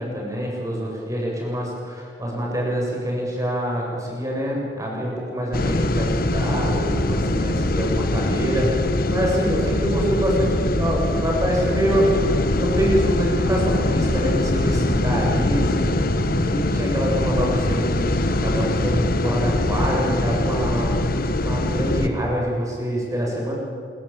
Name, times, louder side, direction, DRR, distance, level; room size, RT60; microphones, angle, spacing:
voice 1, 0.0-8.7 9.1-15.8 16.4-18.1 18.4-20.9 21.4-23.5, equal, 20° right, -2 dB, 7.9 m, -25 dB
sound 1, 5.5-22.1, left 1 dB, 55° left, 1.4 m, -22 dB
27.0 x 23.0 x 9.0 m, 2.5 s
head